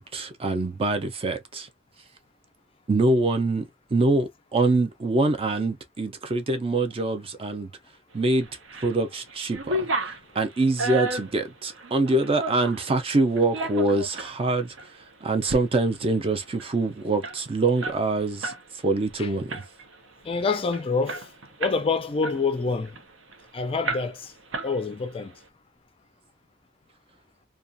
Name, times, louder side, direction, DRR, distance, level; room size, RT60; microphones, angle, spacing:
voice 1, 0.0-1.7 2.9-7.7 8.1-8.5 8.8-14.8 15.2-18.5 18.8-19.6, right 2 dB, 30° right, 0.4 m, -24 dB
sound 1, 8.4-8.9 9.3-12.9 13.4-14.3 14.8-14.9 15.3-15.6 15.9-16.0 16.3-18.6 18.9-19.1 19.5-19.9 20.4-20.5 20.7-21.9 22.2-23.4 23.8-24.3 24.5-25.2, right 2 dB, 80° right, 0.6 m, -32 dB
voice 2, 20.2-21.3 21.6-23.0 23.5-24.3 24.6-25.4, left 4 dB, 30° left, 0.4 m, -26 dB
2.3 x 2.3 x 2.5 m
head